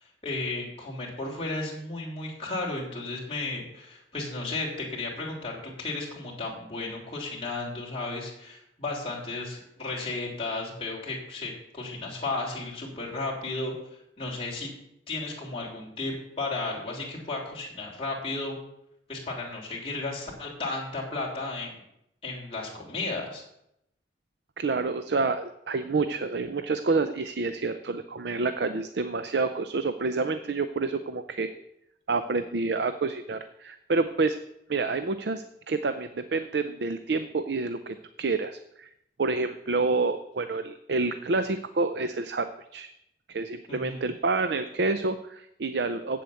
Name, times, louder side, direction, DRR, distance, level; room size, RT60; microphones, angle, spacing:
voice 1, 0.2-13.7 14.2-14.7 15.1-18.5 19.1-21.8 22.2-23.4 43.7-44.1, left 2 dB, 30° left, -3 dB, 3.1 m, -34 dB
voice 2, 24.6-31.5 32.1-34.4 34.7-38.9 39.2-42.9 43.3-46.2, right 3 dB, 60° right, 10 dB, 0.5 m, -28 dB
7.9 x 7.7 x 8.4 m, 0.80 s
head